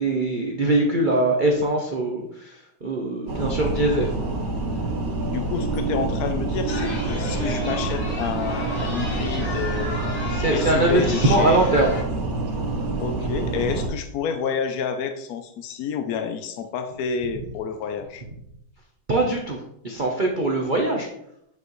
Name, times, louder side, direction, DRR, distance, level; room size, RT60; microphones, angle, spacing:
voice 1, 0.0-4.1 10.3-11.9 19.1-21.1, right 2 dB, 70° right, 0 dB, 0.4 m, -22 dB
sound 1, 3.3-13.9, right 3 dB, 45° right, 1.8 m, -27 dB
voice 2, 5.2-10.0 10.5-11.7 13.0-18.2, left 6 dB, 75° left, 7 dB, 0.8 m, -29 dB
Chatter, 6.7-12.0, left 1 dB, 55° left, 3.2 m, -33 dB
8.9 x 5.5 x 3.1 m, 0.77 s
omnidirectional pair, 2.2 m